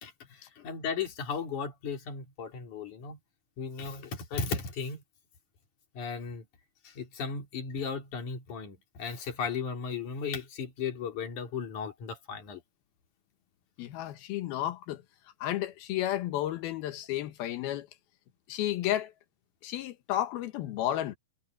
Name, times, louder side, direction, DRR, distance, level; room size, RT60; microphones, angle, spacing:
voice 1, 0.0-3.2 3.6-5.0 5.9-6.4 6.8-12.6, left 5 dB, 55° left, 5.0 m, -36 dB
voice 2, 13.8-15.0 15.4-17.9 18.5-19.1 19.6-21.2, left 13 dB, 85° left, 3.2 m, -32 dB
omnidirectional pair, 4.2 m